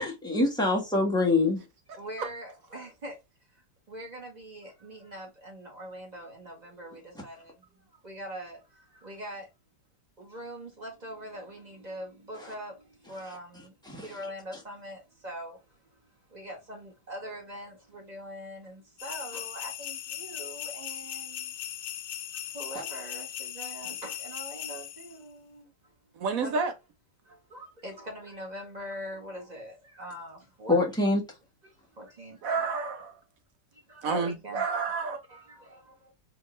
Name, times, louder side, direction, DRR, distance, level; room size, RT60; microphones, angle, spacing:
voice 1, 0.0-1.6 13.9-14.1 30.7-31.2, left 2 dB, 5° left, 0.9 m, -25 dB
voice 2, 1.9-3.2 3.5-9.5 10.2-15.8 16.1-21.7 22.3-25.9 26.4-26.6 27.2-30.8 31.6-32.4 33.7-34.6 35.3-36.1, equal, 25° right, 1.6 m, -43 dB
sound 1, 19.0-25.2, left 11 dB, 70° left, 0.9 m, -38 dB
voice 3, 26.2-26.7 32.4-33.2 34.0-35.2, right 4 dB, 60° right, 1.0 m, -29 dB
4.4 x 2.9 x 3.1 m
omnidirectional pair, 1.9 m